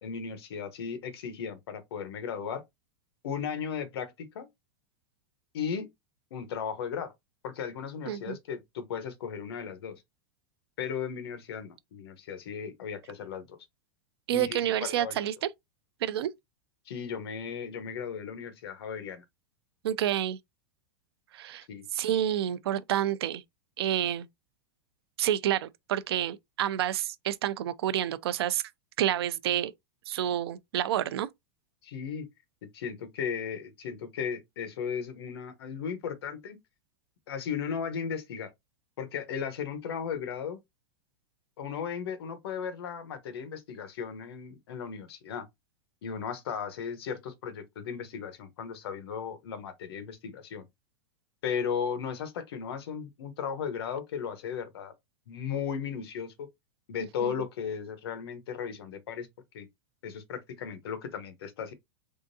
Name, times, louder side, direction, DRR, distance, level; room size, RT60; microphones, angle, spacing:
voice 1, 0.0-2.6 3.2-4.5 5.5-5.9 6.3-7.1 7.4-10.0 10.8-13.6 14.3-15.3 16.9-19.2 21.7-21.9 31.8-32.3 32.6-36.6 37.3-38.5 39.0-40.6 41.6-45.5 46.0-50.7 51.4-54.9 55.3-56.5 56.9-59.3 59.5-59.7 60.0-61.7, left 7 dB, 75° left, 0.9 m, -36 dB
voice 2, 8.1-8.4 14.3-15.5 16.0-16.3 19.8-20.4 21.3-21.6 21.9-23.4 23.8-24.3 25.2-28.6 29.0-29.7 30.1-31.3 57.2-57.3, right 11 dB, 85° right, 0.5 m, -29 dB
3.7 x 3.5 x 2.6 m
supercardioid pair, 175°, 13 cm